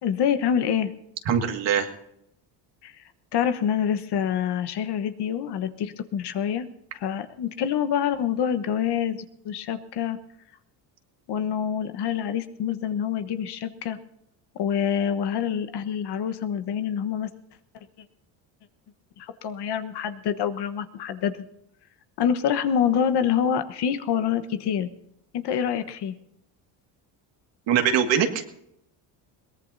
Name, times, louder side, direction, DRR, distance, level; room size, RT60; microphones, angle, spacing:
voice 1, 0.0-0.9 2.8-2.9 3.3-6.7 6.9-10.2 11.3-14.0 14.5-17.3 19.2-21.3 22.2-24.9 25.3-26.1, left 8 dB, 55° left, 9 dB, 1.2 m, -26 dB
voice 2, 1.3-1.9 27.7-28.5, right 8 dB, 65° right, 5 dB, 2.1 m, -22 dB
22.0 x 18.5 x 2.7 m, 0.78 s
supercardioid pair, 95°, 48 cm